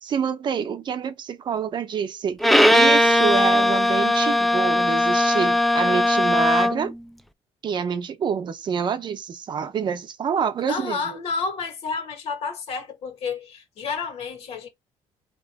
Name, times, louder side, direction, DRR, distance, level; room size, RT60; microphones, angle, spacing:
voice 1, 0.0-2.4 2.7-6.9 7.6-11.2, right 7 dB, 45° right, 0.7 m, -27 dB
Bowed string instrument, 2.4-6.9, left 1 dB, ahead, 0.3 m, -19 dB
voice 2, 10.7-14.7, left 5 dB, 65° left, 1.7 m, -30 dB
4.3 x 2.9 x 3.5 m
cardioid pair, 135°, 11 cm